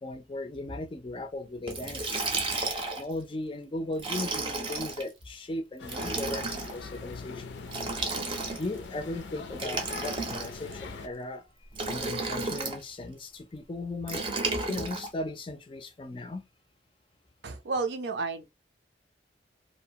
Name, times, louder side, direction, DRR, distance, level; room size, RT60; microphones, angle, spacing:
voice 1, 0.0-2.3 3.0-7.6 8.5-11.5 11.9-14.2 14.7-16.5, left 2 dB, 30° left, 0.4 m, -37 dB
Liquid, 1.7-3.1 4.0-5.0 5.8-6.7 7.7-8.8 9.5-10.7 11.7-12.8 14.1-15.1, right 3 dB, 30° right, 0.6 m, -32 dB
sound 1, 5.8-11.1, left 4 dB, 90° left, 0.5 m, -42 dB
voice 2, 17.4-18.5, right 4 dB, 80° right, 0.5 m, -31 dB
2.7 x 2.1 x 2.7 m
head